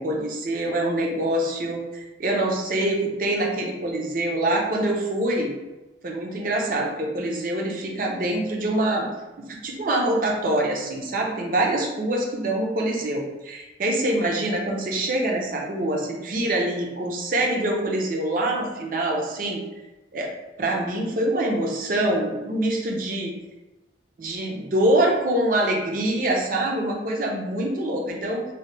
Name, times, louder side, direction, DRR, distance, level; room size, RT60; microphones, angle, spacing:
voice 1, 0.0-5.5 6.0-9.1 9.4-19.6 20.1-20.3 20.6-23.3 24.2-28.5, right 1 dB, 50° right, 0 dB, 0.5 m, -25 dB
2.8 x 2.1 x 3.2 m, 1.1 s
head